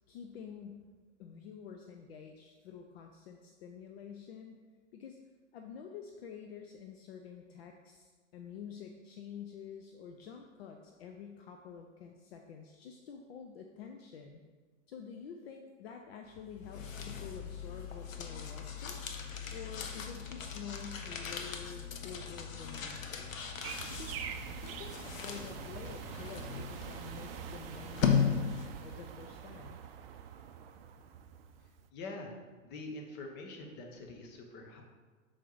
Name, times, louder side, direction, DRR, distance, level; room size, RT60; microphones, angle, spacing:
voice 1, 0.1-0.9 1.2-4.6 4.9-5.2 5.5-14.4 14.9-19.0 19.5-23.5 23.9-24.2 24.6-29.8, left 7 dB, 50° left, 4 dB, 0.6 m, -48 dB
sound 1, 16.4-28.9, left 7 dB, 80° left, 0.9 m, -37 dB
sound 2, 23.6-31.9, right 8 dB, 50° right, 0.5 m, -45 dB
voice 2, 31.9-32.3 32.6-34.8, left 2 dB, 25° left, 2 dB, 0.9 m, -45 dB
6.3 x 4.5 x 4.0 m, 1.4 s
hypercardioid pair, 120°, 39 cm